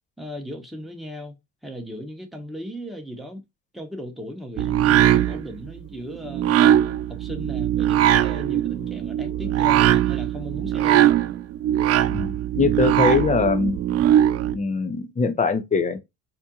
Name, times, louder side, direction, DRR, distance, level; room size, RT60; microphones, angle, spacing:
voice 1, 0.2-1.4 1.6-3.4 3.7-6.5 7.1-11.1, equal, ahead, 1.1 m, -36 dB
sound 1, 4.6-14.6, right 11 dB, 40° right, 0.4 m, -20 dB
voice 2, 12.1-13.8 14.5-16.0, left 4 dB, 20° left, 0.7 m, -22 dB
4.2 x 3.0 x 2.4 m
supercardioid pair, 105°, 37 cm